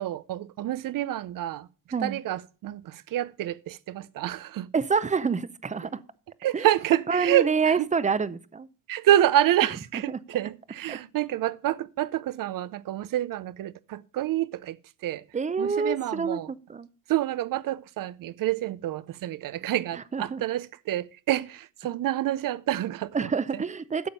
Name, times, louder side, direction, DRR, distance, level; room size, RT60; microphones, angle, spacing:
voice 1, 0.0-1.7 2.0-4.7 6.4-7.9 8.9-14.8 15.0-15.2 15.6-16.5 17.1-23.6, right 13 dB, 80° right, 0.6 m, -28 dB
voice 2, 4.7-6.0 6.5-6.7 7.1-8.7 10.1-10.2 10.9-11.0 15.3-16.9 20.1-20.4 23.1-24.1, right 5 dB, 20° right, 0.6 m, -27 dB
11.5 x 7.1 x 5.3 m
cardioid pair, 120°, 33 cm